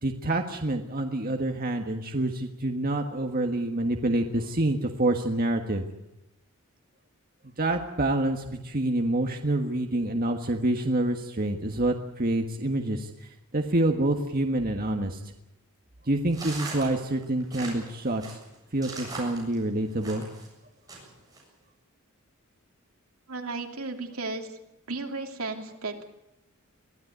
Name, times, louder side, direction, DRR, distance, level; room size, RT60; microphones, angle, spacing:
voice 1, 0.0-5.8 7.6-13.3 13.5-15.3 16.0-18.4 18.7-20.2, right 1 dB, 40° right, 4 dB, 1.5 m, -27 dB
sound 1, 16.3-20.5 20.9-21.4, right 3 dB, 15° right, 7.7 m, -39 dB
voice 2, 23.3-24.6 24.9-26.0, right 3 dB, 75° right, 4 dB, 2.9 m, -34 dB
23.5 x 15.5 x 9.5 m, 0.88 s
head